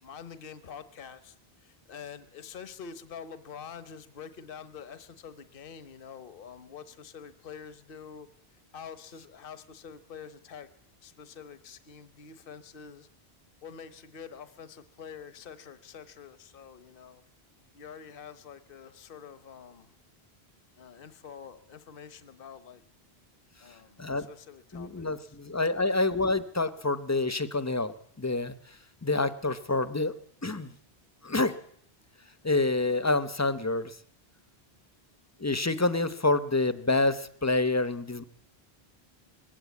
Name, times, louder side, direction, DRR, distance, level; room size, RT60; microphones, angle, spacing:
voice 1, 0.0-8.3 8.7-10.7 11.0-13.1 13.6-17.2 17.7-19.9 20.7-22.8 23.6-25.3, left 7 dB, 60° left, 13 dB, 1.2 m, -46 dB
voice 2, 24.7-28.8 29.0-30.1 30.4-30.7 31.2-31.6 32.4-34.0 35.4-38.2, left 2 dB, 15° left, 14 dB, 0.8 m, -27 dB
20.5 x 16.5 x 8.3 m, 0.67 s
omnidirectional pair, 1.1 m